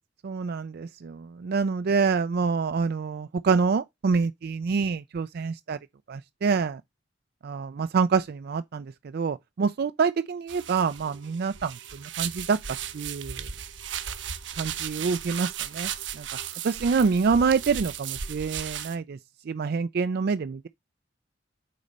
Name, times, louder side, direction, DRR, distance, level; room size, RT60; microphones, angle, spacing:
voice 1, 0.2-5.8 6.1-6.8 7.4-12.6 12.9-13.5 14.6-15.9 16.1-16.3 16.6-19.2 19.5-20.7, right 5 dB, 55° right, 0.4 m, -26 dB
sound 1, 10.5-19.0, right 9 dB, 75° right, 1.0 m, -36 dB
8.4 x 4.2 x 5.2 m
head